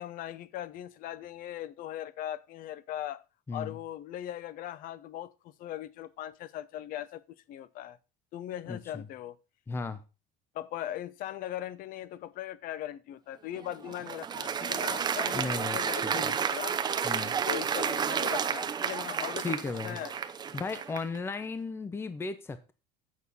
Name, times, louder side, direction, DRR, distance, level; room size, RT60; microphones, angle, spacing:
voice 1, 0.0-3.2 3.5-7.2 7.5-8.0 8.3-9.4 10.5-16.8 17.5-19.6 19.8-20.1, left 12 dB, 50° left, 0.7 m, -39 dB
voice 2, 3.5-3.8 8.7-9.1 9.7-10.0 15.3-16.3 17.0-17.4 19.4-20.0 20.5-22.7, left 4 dB, 15° left, 0.7 m, -36 dB
Applause, 13.6-21.2, right 7 dB, 25° right, 0.7 m, -31 dB
8.4 x 6.3 x 5.4 m
cardioid pair, 145°, 18 cm